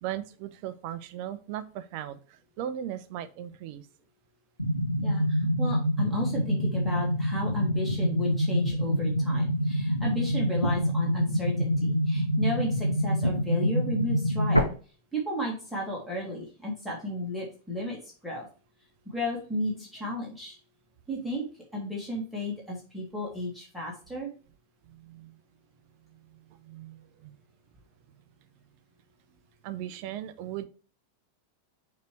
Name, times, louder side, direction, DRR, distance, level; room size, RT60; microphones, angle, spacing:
voice 1, 0.0-3.9 20.0-20.1 24.9-25.4 26.5-27.4 28.1-28.2 29.6-30.6, right 11 dB, 45° right, 11 dB, 0.7 m, -38 dB
sound 1, 4.6-14.6, equal, 90° left, 0.8 m, -26 dB
voice 2, 5.0-14.7 15.1-18.0 18.2-18.5 19.1-20.6 21.1-21.4 21.7-24.3, left 1 dB, ahead, -4 dB, 2.1 m, -33 dB
6.7 x 3.1 x 4.6 m, 0.37 s
figure-of-eight pair, 90°, 0 cm